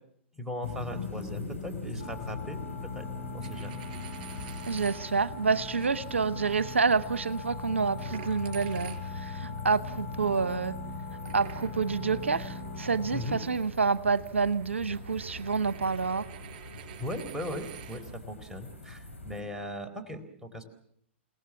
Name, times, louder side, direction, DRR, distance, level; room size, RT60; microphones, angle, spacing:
voice 1, 0.3-3.1 3.3-3.8 13.1-13.4 17.0-20.6, left 1 dB, 5° right, 4.1 m, -38 dB
sound 1, 0.6-19.4, left 3 dB, 90° left, 4.4 m, -43 dB
sound 2, 2.0-13.5, left 4 dB, 65° left, 4.6 m, -40 dB
Coin (dropping), 3.3-5.0 5.7-5.9 8.0-9.4 11.3-18.0, right 11 dB, 45° right, 5.8 m, -48 dB
voice 2, 4.7-10.7 11.3-16.2, right 5 dB, 75° right, 0.9 m, -28 dB
29.5 x 18.5 x 7.2 m
figure-of-eight pair, 110°, 7 cm